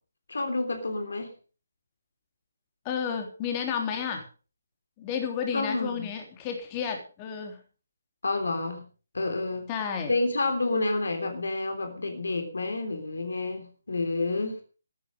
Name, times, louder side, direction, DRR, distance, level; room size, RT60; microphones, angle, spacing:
voice 1, 0.3-1.3 5.5-6.1 8.2-8.8 9.1-9.7 10.1-14.6, left 2 dB, 60° left, 7 dB, 3.4 m, -29 dB
voice 2, 2.9-4.3 5.0-7.6 9.7-10.1, left 7 dB, 20° left, 4 dB, 3.5 m, -31 dB
14.0 x 12.5 x 5.3 m, 0.38 s
figure-of-eight pair, 145°, 0 cm